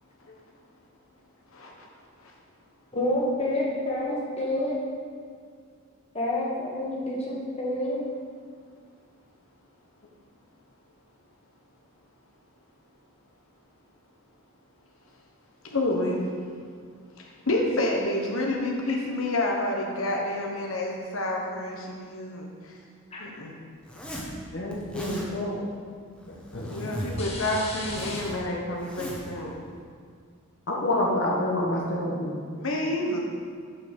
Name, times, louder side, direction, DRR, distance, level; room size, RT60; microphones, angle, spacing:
voice 1, 1.5-2.4 15.1-15.2 15.6-16.6 17.1-22.8 23.2-23.5 26.6-29.5 32.5-33.2, left 1 dB, 75° left, 0 dB, 1.1 m, -29 dB
voice 2, 2.9-4.8 6.1-8.1 23.1-23.3 27.2-28.2, left 1 dB, 30° left, -4 dB, 1.5 m, -29 dB
Zipper (clothing), 23.8-24.3 24.7-25.3 26.1-27.3 27.6-29.3, right 1 dB, 5° left, 1.0 m, -38 dB
voice 3, 24.5-25.7 26.5-26.7 30.7-32.4, left 1 dB, 60° left, -3 dB, 1.2 m, -27 dB
7.0 x 5.6 x 6.7 m, 2.1 s
head